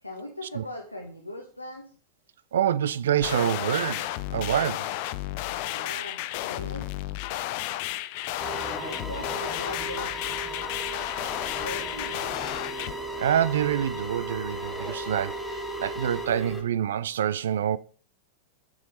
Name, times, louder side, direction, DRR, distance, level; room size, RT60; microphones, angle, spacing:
voice 1, 0.0-1.9 5.7-6.9 8.6-10.1 11.6-12.3, left 1 dB, 90° left, 1.2 m, -40 dB
voice 2, 2.5-5.0 13.2-17.8, right 9 dB, 60° right, 0.4 m, -26 dB
sound 1, 3.2-12.9, left 15 dB, 45° left, 0.5 m, -32 dB
sound 2, 8.4-16.6, right 1 dB, 5° left, 1.2 m, -35 dB
7.2 x 6.1 x 4.1 m
figure-of-eight pair, 90°, 0 cm